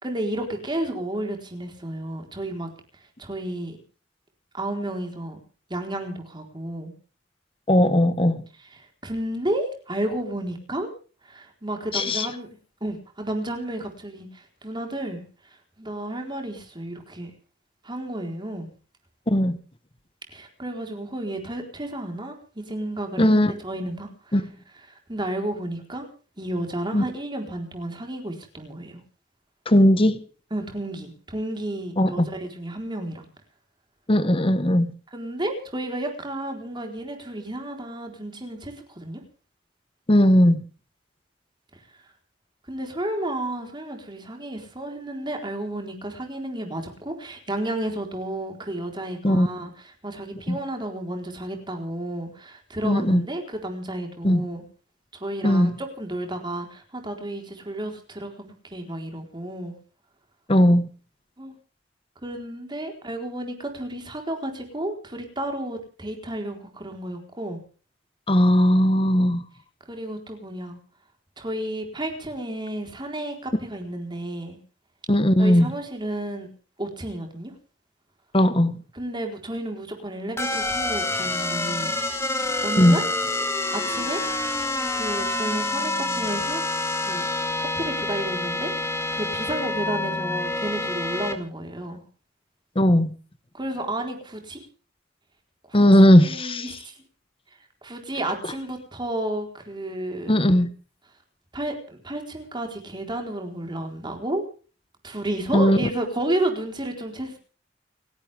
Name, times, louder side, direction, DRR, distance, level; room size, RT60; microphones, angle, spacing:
voice 1, 0.0-2.7 3.2-3.8 4.5-5.4 5.7-6.9 9.0-10.9 11.2-12.5 12.8-15.2 15.8-17.3 17.8-18.7 20.3-24.4 25.1-26.1 26.4-29.0 30.5-33.3 35.1-39.2 42.7-54.6 55.1-59.7 61.4-61.5 62.2-67.6 69.9-70.8 71.4-74.6 75.4-76.5 76.8-77.5 78.9-81.9 82.6-83.1 83.7-84.2 84.9-86.6 87.1-87.3 87.6-92.0 93.5-94.6 95.7-95.8 96.1-96.9 97.8-100.4 101.5-104.4 105.0-107.4, right 1 dB, 25° right, 4 dB, 4.0 m, -32 dB
voice 2, 7.7-8.4 11.9-12.3 19.3-19.6 23.2-23.5 24.3-24.4 26.9-27.0 29.7-30.2 32.0-32.3 34.1-34.9 40.1-40.6 49.2-49.5 50.5-50.6 52.8-53.2 54.2-54.4 55.4-55.7 60.5-60.9 68.3-69.4 75.1-75.7 78.3-78.8 82.8-83.0 92.7-93.1 95.7-96.7 100.3-100.7 105.5-105.8, equal, 30° left, 13 dB, 1.2 m, -18 dB
sound 1, 80.4-91.3, left 2 dB, 15° left, 2.0 m, -27 dB
29.5 x 11.5 x 3.5 m, 0.38 s
head